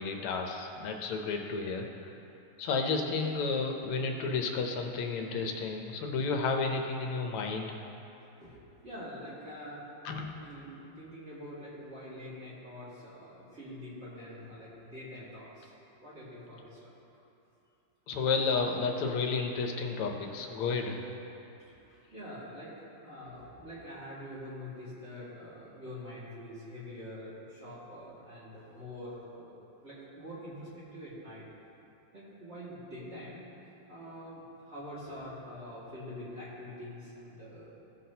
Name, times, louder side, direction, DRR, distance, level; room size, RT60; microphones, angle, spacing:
voice 1, 0.0-1.9 2.6-7.8 10.0-10.3 18.1-21.0, left 4 dB, 90° left, 3 dB, 1.7 m, -31 dB
voice 2, 8.8-15.7 16.0-16.9 18.6-18.8 21.6-29.6 29.8-31.4 32.1-33.4 33.9-37.7, left 1 dB, 30° right, -9 dB, 2.2 m, -45 dB
15.0 x 5.9 x 2.8 m, 2.8 s
omnidirectional pair, 2.4 m